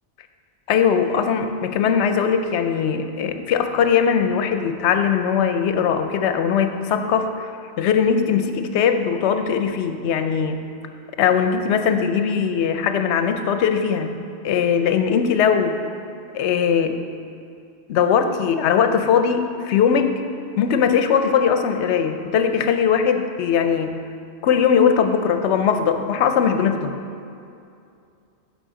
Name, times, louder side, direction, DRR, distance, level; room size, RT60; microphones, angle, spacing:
voice 1, 0.7-7.5 7.8-10.6 11.2-14.2 14.4-15.8 16.3-17.0 17.9-20.1 20.6-24.0 24.4-26.9, left 7 dB, 80° left, 7 dB, 0.9 m, -20 dB
6.3 x 5.0 x 6.8 m, 2.5 s
omnidirectional pair, 1.2 m